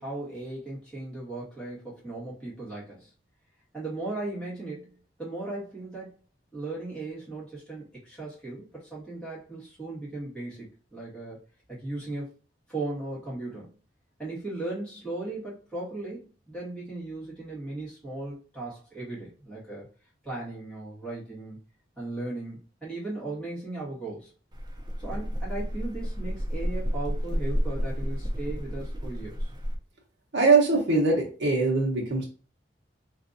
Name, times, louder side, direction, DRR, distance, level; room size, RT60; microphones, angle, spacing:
voice 1, 0.0-3.1 3.7-6.2 6.5-11.4 11.7-12.3 12.7-13.7 14.2-19.9 20.2-21.6 22.0-24.3 25.0-29.5, right 2 dB, 5° left, -8 dB, 1.7 m, -37 dB
sound 1, 24.5-29.8, equal, 25° right, 0.4 m, -31 dB
voice 2, 30.3-32.2, right 3 dB, 70° right, -2 dB, 0.9 m, -22 dB
3.4 x 2.6 x 2.6 m, 0.36 s
head